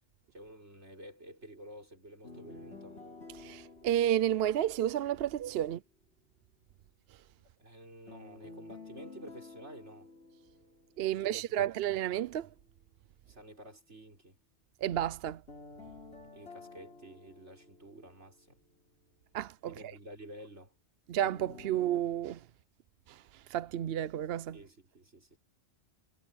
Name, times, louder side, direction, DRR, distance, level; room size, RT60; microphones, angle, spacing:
voice 1, 0.3-3.0 7.6-10.1 11.1-11.6 13.3-14.4 16.3-18.6 19.6-20.7 24.5-25.4, right 1 dB, 85° right, 6.3 m, -51 dB
sound 1, 2.2-5.3 8.1-11.3 15.5-18.6 21.2-22.0, left 3 dB, 70° left, 6.1 m, -51 dB
voice 2, 3.3-5.8 11.0-12.5 14.8-15.4 19.3-19.7 21.1-22.4 23.1-24.6, right 11 dB, 65° right, 0.7 m, -31 dB
omnidirectional pair, 1.1 m